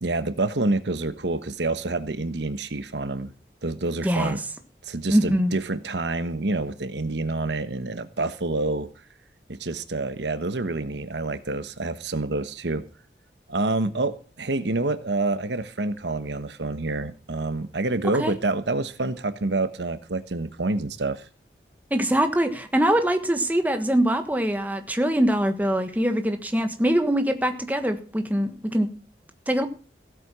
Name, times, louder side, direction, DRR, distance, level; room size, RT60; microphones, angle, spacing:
voice 1, 0.0-3.3 3.6-4.4 4.8-8.9 9.5-12.8 13.5-21.3, right 2 dB, 85° right, 12 dB, 1.2 m, -27 dB
voice 2, 4.0-4.4 5.1-5.5 18.2-18.3 21.9-28.9 29.5-29.7, right 1 dB, 10° right, 7 dB, 1.4 m, -23 dB
16.0 x 8.7 x 6.2 m, 0.37 s
head